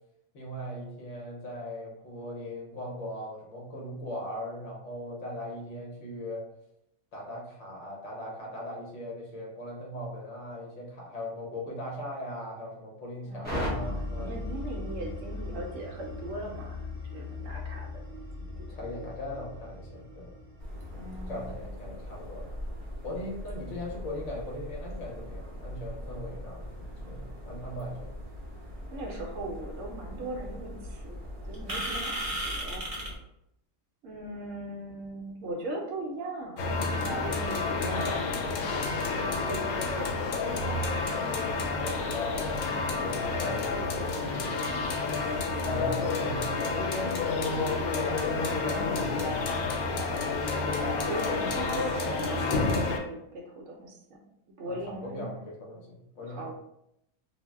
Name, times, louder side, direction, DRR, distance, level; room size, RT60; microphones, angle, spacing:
voice 1, 0.3-6.4 7.1-14.3 18.7-20.3 21.3-22.5 23.0-26.6 27.0-28.0 41.8-42.5 42.9-44.6 45.6-49.6 54.6-56.5, left 1 dB, 60° left, -2 dB, 1.0 m, -39 dB
voice 2, 13.2-16.8 17.1-18.0 18.4-18.7 20.9-21.6 28.9-32.9 34.0-36.7 37.1-40.3 51.0-54.2 54.6-55.3 56.2-56.5, right 1 dB, 70° right, -1 dB, 0.9 m, -39 dB
sound 1, 13.4-21.5, left 2 dB, 10° left, 0.5 m, -38 dB
sound 2, 20.6-33.2, equal, 40° right, 0.5 m, -39 dB
sound 3, 36.6-53.0, left 3 dB, 90° left, 1.1 m, -29 dB
2.5 x 2.0 x 3.3 m, 0.78 s
omnidirectional pair, 1.5 m